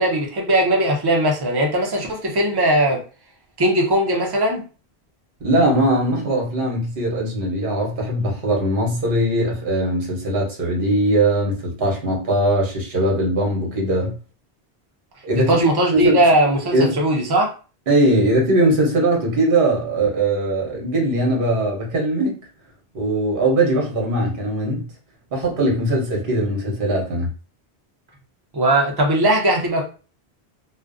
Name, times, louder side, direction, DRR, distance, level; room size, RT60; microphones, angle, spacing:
voice 1, 0.0-3.0 3.6-4.6 15.3-17.5 28.5-29.8, right 1 dB, 30° right, 0.5 m, -19 dB
voice 2, 5.4-14.1 15.2-16.2 16.7-17.1 17.9-22.4 22.9-24.9 25.3-27.3, right 1 dB, 55° right, 1.0 m, -20 dB
2.4 x 2.1 x 2.4 m
omnidirectional pair, 1.1 m